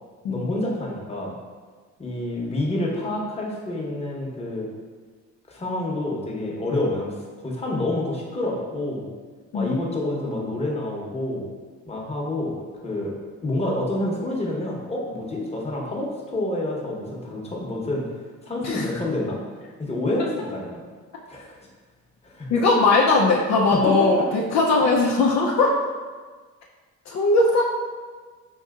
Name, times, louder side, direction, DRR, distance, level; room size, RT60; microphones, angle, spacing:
voice 1, 0.3-1.3 2.0-4.7 5.5-7.1 7.4-9.1 9.5-11.4 11.9-12.6 12.8-18.1 18.4-19.4 19.8-20.7 21.3-21.6 22.2-22.5 23.7-24.3, left 1 dB, 20° left, -3 dB, 0.9 m, -28 dB
voice 2, 22.5-25.8 27.1-27.6, left 3 dB, 65° left, -2 dB, 0.5 m, -19 dB
5.4 x 2.7 x 2.4 m, 1.5 s
cardioid pair, 90°, 30 cm